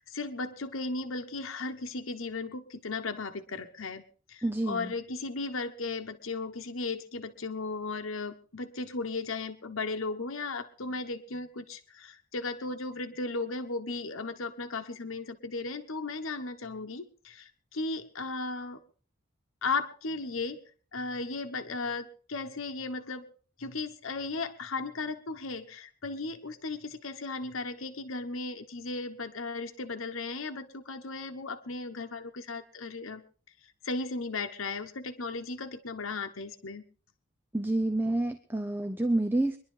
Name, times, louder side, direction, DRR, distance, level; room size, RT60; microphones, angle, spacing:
voice 1, 0.0-4.0 4.3-18.8 19.6-20.6 20.9-23.3 23.6-33.2 33.8-36.8, left 3 dB, 80° left, 6 dB, 1.2 m, -36 dB
voice 2, 4.4-4.9 37.5-39.6, right 1 dB, 10° right, 8 dB, 0.7 m, -28 dB
23.5 x 11.5 x 3.7 m, 0.40 s
head